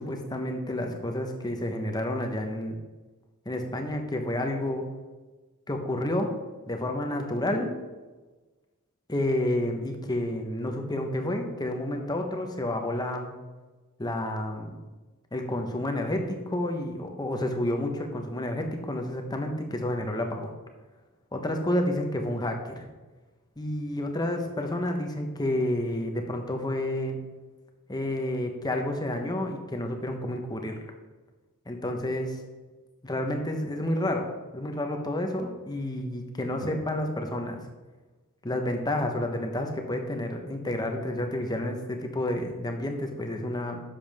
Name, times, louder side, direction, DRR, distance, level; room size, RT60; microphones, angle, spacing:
voice 1, 0.0-2.8 3.4-4.8 5.7-6.3 6.7-7.7 9.1-13.3 14.0-14.8 15.3-20.5 21.3-22.9 23.6-27.2 27.9-30.8 31.7-32.4 33.0-37.6 38.4-43.8, left 1 dB, 20° left, 4 dB, 1.0 m, -30 dB
11.0 x 7.2 x 3.5 m, 1.2 s
head